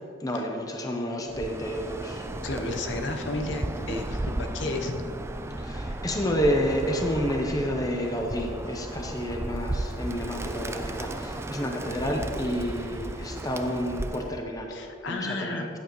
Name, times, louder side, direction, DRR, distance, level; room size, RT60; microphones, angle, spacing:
voice 1, 0.2-2.3 5.6-14.8 15.1-15.7, equal, 15° left, 2 dB, 0.7 m, -30 dB
Bird, 1.3-14.4, right 1 dB, 10° right, 0.3 m, -34 dB
voice 2, 2.4-5.0 14.7-15.7, left 2 dB, 60° left, 4 dB, 0.9 m, -32 dB
14.0 x 9.2 x 3.1 m, 2.6 s
head